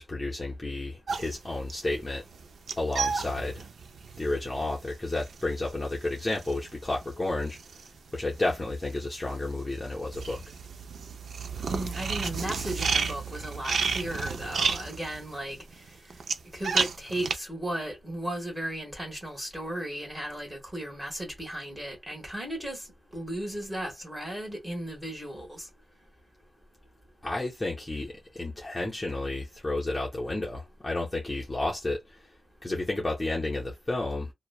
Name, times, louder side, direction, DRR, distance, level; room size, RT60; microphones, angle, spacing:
voice 1, 0.0-2.2 2.8-3.7 4.2-7.6 8.1-10.4 27.2-32.2 32.6-34.3, left 2 dB, 20° left, 0.6 m, -31 dB
sound 1, 1.1-8.6 8.8-17.4, right 5 dB, 70° right, 0.4 m, -32 dB
voice 2, 11.7-15.6 16.5-22.9 23.1-25.7, right 1 dB, 10° right, 1.2 m, -35 dB
2.9 x 2.1 x 2.2 m
wide cardioid pair, 155°, 0 cm